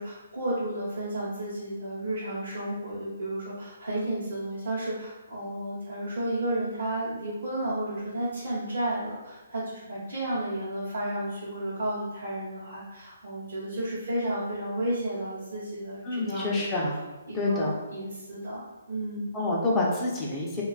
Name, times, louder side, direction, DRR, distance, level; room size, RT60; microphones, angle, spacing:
voice 1, 0.0-16.8 17.3-19.3, right 1 dB, 65° right, -9 dB, 0.8 m, -32 dB
voice 2, 16.0-17.0 17.3-17.7 19.3-20.6, left 2 dB, 15° left, -4 dB, 0.5 m, -27 dB
2.3 x 2.3 x 2.3 m, 1.1 s
figure-of-eight pair, 135°, 0 cm